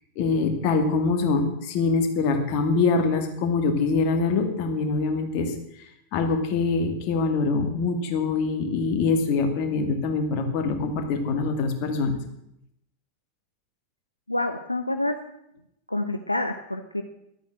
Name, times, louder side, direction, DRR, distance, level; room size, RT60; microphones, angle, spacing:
voice 1, 0.2-5.5 6.1-12.1, left 4 dB, 45° left, 5 dB, 2.2 m, -24 dB
voice 2, 14.3-15.2 15.9-17.0, left 1 dB, 85° left, 6 dB, 0.8 m, -27 dB
11.5 x 8.7 x 7.6 m, 0.81 s
figure-of-eight pair, 90°, 0 cm